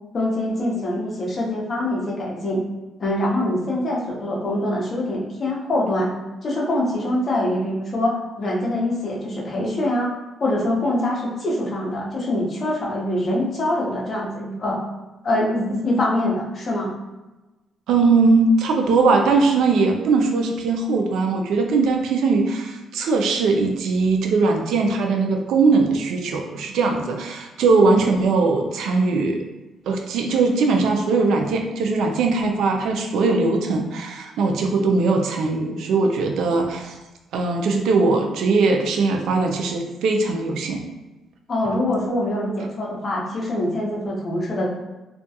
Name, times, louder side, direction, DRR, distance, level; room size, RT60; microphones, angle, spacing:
voice 1, 0.1-2.6 3.0-6.1 6.4-10.1 10.4-14.8 15.2-16.9 41.5-44.7, left 1 dB, 45° left, -3 dB, 0.7 m, -24 dB
voice 2, 17.9-29.4 29.9-36.9 37.3-40.8, right 3 dB, 80° right, 3 dB, 0.4 m, -20 dB
2.3 x 2.3 x 2.7 m, 1.1 s
cardioid pair, 90°, 0 cm